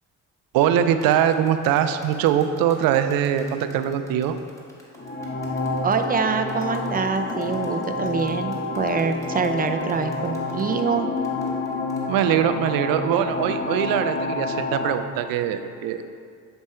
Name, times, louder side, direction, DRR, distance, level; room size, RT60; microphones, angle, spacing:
voice 1, 0.5-4.4 12.1-16.0, right 9 dB, 80° right, 9 dB, 0.5 m, -22 dB
sound 1, 1.0-12.0, equal, 10° left, 1.4 m, -51 dB
sound 2, 4.9-14.9, left 3 dB, 30° left, 0.8 m, -29 dB
voice 2, 5.8-11.1, right 5 dB, 25° right, 7 dB, 0.4 m, -25 dB
7.6 x 3.5 x 4.2 m, 2.3 s
supercardioid pair, 75°, 34 cm